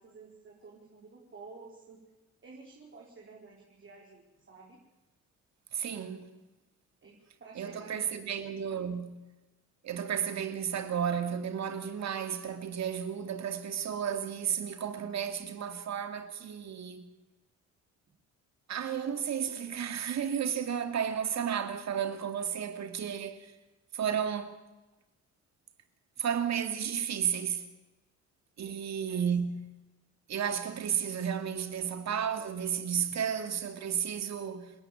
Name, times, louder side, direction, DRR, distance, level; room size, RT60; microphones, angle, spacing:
voice 1, 0.0-2.0 2.4-4.8 7.0-8.3 28.6-29.2, right 4 dB, 40° right, 5.0 m, -52 dB
voice 2, 5.7-6.3 7.5-9.2 9.8-17.1 18.7-23.5 23.9-24.6 26.2-27.6 28.6-29.6 30.3-34.7, right 8 dB, 65° right, 2.5 m, -33 dB
29.5 x 11.0 x 8.7 m
cardioid pair, 90°, 30 cm